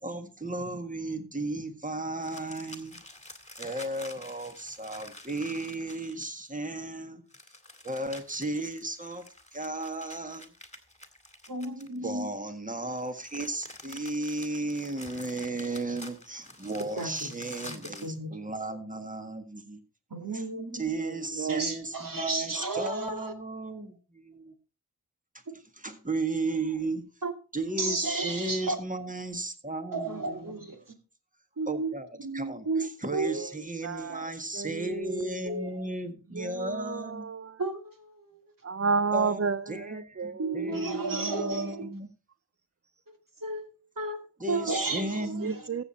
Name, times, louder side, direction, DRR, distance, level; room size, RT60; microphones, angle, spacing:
voice 1, 0.0-3.0 3.6-7.2 7.8-9.3 9.5-10.5 12.0-19.8 20.3-20.4 20.7-24.5 25.8-27.0 27.5-30.7 31.7-32.1 32.3-37.3 39.1-42.1 44.4-45.5, right 2 dB, 20° right, 1.7 m, -35 dB
sound 1, 2.2-6.5 7.3-12.2 12.9-18.2, left 2 dB, 15° left, 2.1 m, -48 dB
voice 2, 11.5-12.3 17.0-17.3 17.6-18.4 20.1-20.8 21.5-23.3 27.2-27.3 27.8-28.8 29.9-30.8 31.6-33.4 35.4-35.7 37.6-38.4 40.4-41.9 43.1-44.2 44.5-45.7, right 3 dB, 55° right, 2.3 m, -33 dB
voice 3, 21.0-21.7 33.2-33.5 33.8-35.7 36.3-37.6 38.6-41.7 45.4-45.8, right 5 dB, 40° right, 0.5 m, -33 dB
14.5 x 7.4 x 4.2 m
wide cardioid pair, 55°, 39 cm